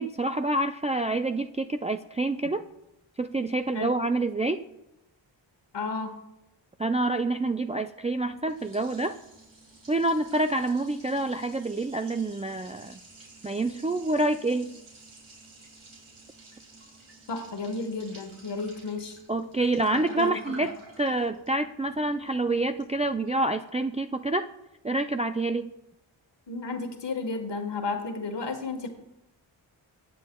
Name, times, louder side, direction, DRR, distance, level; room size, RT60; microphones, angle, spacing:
voice 1, 0.0-2.6 3.2-4.7 6.8-9.2 9.9-13.0 13.4-14.8 19.3-24.5 24.8-25.7, right 2 dB, 15° right, 7 dB, 0.3 m, -27 dB
voice 2, 5.7-6.2 17.3-19.2 19.9-20.5 26.5-28.9, left 3 dB, 55° left, 6 dB, 1.5 m, -33 dB
Liquid, 8.1-23.3, right 2 dB, 70° right, 3.0 m, -51 dB
17.0 x 7.6 x 2.3 m, 0.89 s
cardioid pair, 45°, 49 cm